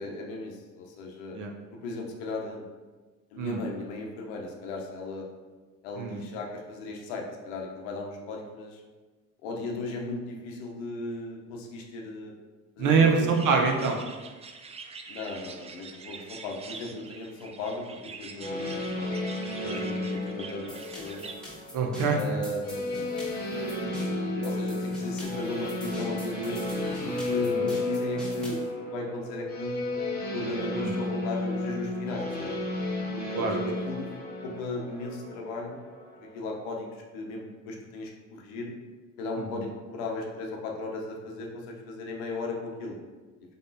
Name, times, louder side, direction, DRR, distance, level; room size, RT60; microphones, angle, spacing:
voice 1, 0.0-1.4 1.7-2.6 3.3-5.3 5.8-8.8 9.4-12.3 12.8-13.3 15.1-19.2 19.6-21.2 22.1-23.1 23.8-26.6 27.0-29.7 30.3-32.7 33.1-34.1 34.4-35.8 36.2-38.7 39.2-43.0, left 2 dB, 75° left, 1 dB, 0.8 m, -36 dB
voice 2, 12.8-14.0 19.6-19.8 21.7-22.2 27.6-27.7 30.7-30.9 33.3-33.6 39.5-39.6, right 5 dB, 55° right, 2 dB, 0.8 m, -24 dB
sound 1, 13.3-21.3, right 5 dB, 20° right, 0.3 m, -45 dB
sound 2, 18.4-36.5, left 2 dB, 25° left, 1.2 m, -33 dB
sound 3, 20.7-28.7, equal, ahead, 1.3 m, -43 dB
3.9 x 3.6 x 2.6 m, 1.3 s
hypercardioid pair, 60°, 38 cm